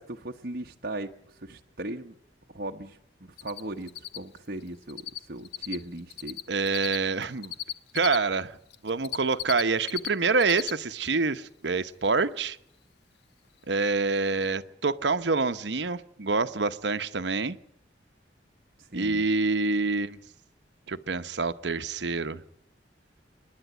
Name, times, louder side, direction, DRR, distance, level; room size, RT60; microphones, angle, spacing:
voice 1, 0.0-2.1 2.5-6.4 18.8-19.2, right 1 dB, 55° right, 2 dB, 1.1 m, -38 dB
Cricket, 3.4-3.6 3.9-8.2 8.7-10.1 10.3-10.7 11.1-11.2 13.7-13.8 14.1-14.2 14.4-14.5, left 12 dB, 65° left, 1.1 m, -35 dB
voice 2, 6.5-7.5 7.9-8.6 8.8-12.6 13.7-17.6 18.9-20.2 20.9-22.4, right 4 dB, 75° right, 11 dB, 1.0 m, -26 dB
27.5 x 10.5 x 9.1 m, 0.78 s
head